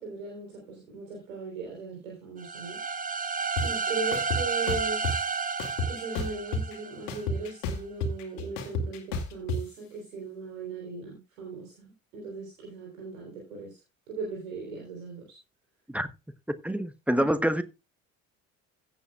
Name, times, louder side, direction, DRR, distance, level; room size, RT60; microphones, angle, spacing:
voice 1, 0.0-2.8 3.6-5.0 5.9-13.8 14.1-15.4 17.2-17.4, right 4 dB, 70° right, 3.6 m, -38 dB
sound 1, 2.4-7.2, right 5 dB, 20° right, 1.3 m, -31 dB
sound 2, 3.6-3.7 4.1-5.1 5.6-6.8 7.1-9.6, left 3 dB, 60° left, 2.2 m, -30 dB
voice 2, 16.6-17.6, equal, 5° right, 0.9 m, -26 dB
16.0 x 8.8 x 2.3 m
figure-of-eight pair, 55°, 42 cm